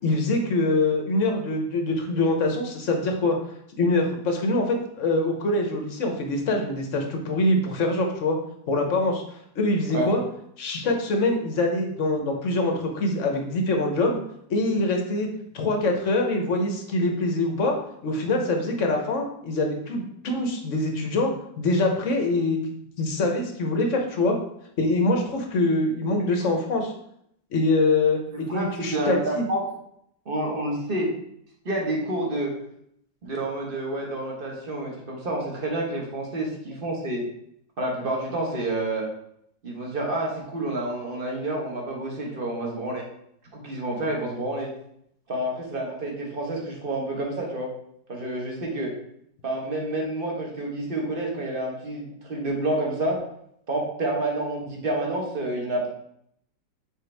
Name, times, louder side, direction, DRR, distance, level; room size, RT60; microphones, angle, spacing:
voice 1, 0.0-3.4 3.8-8.4 8.7-9.2 9.5-10.2 10.6-14.2 14.5-15.3 15.5-17.8 18.0-21.3 21.6-22.6 23.0-24.4 24.8-26.9 27.5-29.4, left 2 dB, 50° left, 2 dB, 1.1 m, -24 dB
voice 2, 28.3-29.6 30.2-31.2 31.6-32.6 33.2-37.2 37.8-39.1 39.6-43.0 43.5-44.7 45.3-47.8 48.1-48.9 49.4-53.2 53.7-55.9, right 1 dB, 30° right, -1 dB, 1.3 m, -29 dB
6.6 x 4.6 x 3.3 m, 0.72 s
omnidirectional pair, 2.0 m